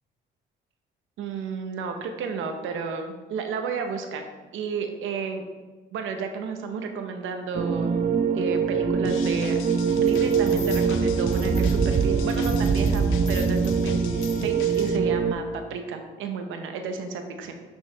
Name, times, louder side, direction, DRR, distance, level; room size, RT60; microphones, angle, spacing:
voice 1, 1.2-4.3 4.5-5.5 5.9-8.1 8.3-9.6 10.0-17.5, right 5 dB, 85° right, 5 dB, 0.8 m, -32 dB
sound 1, 7.5-15.3, right 5 dB, 40° right, 0.5 m, -23 dB
sound 2, 9.0-15.0, left 7 dB, 85° left, 0.5 m, -39 dB
audio corrente bianca.R, 10.1-10.9 11.3-12.0 12.3-13.8 14.2-14.5 14.7-14.9, left 3 dB, 20° left, 0.5 m, -42 dB
5.9 x 5.5 x 3.3 m, 1.3 s
cardioid pair, 90°, 20 cm